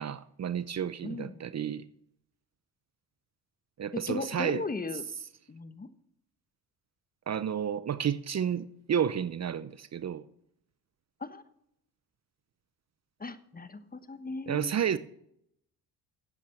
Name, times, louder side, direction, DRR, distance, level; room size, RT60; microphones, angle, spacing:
voice 1, 0.0-1.8 3.8-4.6 7.3-10.2 14.5-15.0, right 8 dB, 40° right, 0.7 m, -31 dB
voice 2, 1.0-1.4 3.9-5.0 5.5-5.9 11.2-11.4 13.2-14.8, left 3 dB, 20° left, 1.1 m, -37 dB
11.0 x 8.4 x 7.9 m
supercardioid pair, 75°, 41 cm